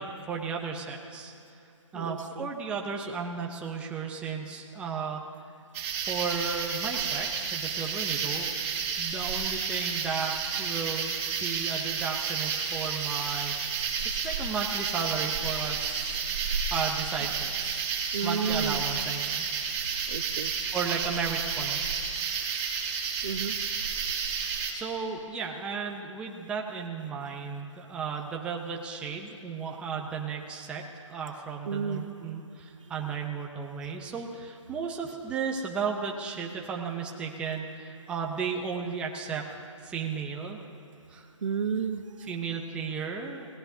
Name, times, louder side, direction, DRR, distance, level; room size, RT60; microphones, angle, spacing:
voice 1, 0.0-1.3 1.9-5.3 6.0-8.5 9.0-11.1 11.4-16.4 16.7-17.9 18.2-19.5 20.7-21.8 24.4-39.5 39.8-40.6 41.1-41.3 42.2-43.5, right 5 dB, 5° right, 0 dB, 0.6 m, -34 dB
voice 2, 1.9-2.5 18.1-18.8 20.1-20.5 23.2-23.5 31.7-32.0 41.4-42.0, right 6 dB, 70° right, 10 dB, 0.9 m, -31 dB
sound 1, 5.7-24.7, right 6 dB, 25° right, 1.9 m, -31 dB
25.0 x 17.0 x 2.7 m, 2.7 s
hypercardioid pair, 155°, 17 cm